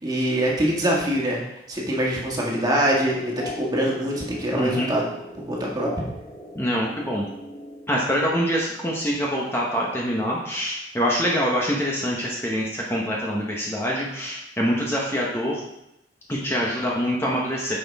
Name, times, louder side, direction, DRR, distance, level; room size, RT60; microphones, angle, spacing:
voice 1, 0.0-1.4 1.7-5.1 5.5-5.9, right 1 dB, 20° right, -3 dB, 1.8 m, -24 dB
sound 1, 2.7-8.2, left 1 dB, 30° left, 2.0 m, -39 dB
voice 2, 4.5-4.9 6.6-7.2 7.9-15.6 16.3-17.8, equal, 15° left, -3 dB, 1.0 m, -25 dB
9.4 x 6.2 x 3.5 m, 0.86 s
head